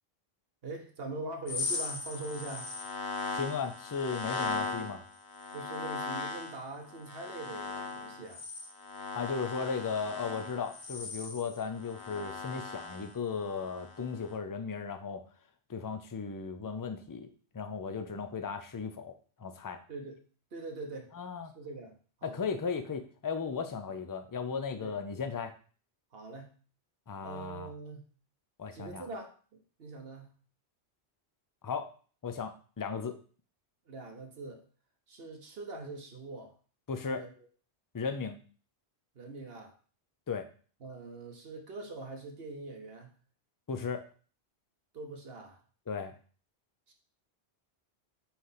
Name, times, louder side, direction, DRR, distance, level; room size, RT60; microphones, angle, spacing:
voice 1, 0.6-2.7 5.5-8.4 19.9-20.2 20.5-21.1 21.5-22.4 24.8-25.0 26.1-26.5 27.2-28.0 28.7-30.3 33.9-34.6 35.1-36.5 37.0-37.5 39.1-39.7 40.8-43.1 44.9-45.6 46.9-47.0, right 3 dB, 65° right, 3 dB, 1.2 m, -43 dB
sound 1, 1.5-6.6 6.9-14.0 14.3-14.4, left 4 dB, 75° left, 1.2 m, -38 dB
voice 2, 3.3-5.0 9.1-15.2 15.7-17.3 17.5-19.1 19.4-19.8 21.1-21.5 22.2-25.5 27.1-27.7 28.6-29.1 31.6-31.9 32.2-33.1 36.9-37.2 37.9-38.4 40.3-40.5 43.7-44.0 45.9-46.1, left 5 dB, 30° left, 8 dB, 0.4 m, -36 dB
5.8 x 3.3 x 5.6 m, 0.41 s
omnidirectional pair, 1.1 m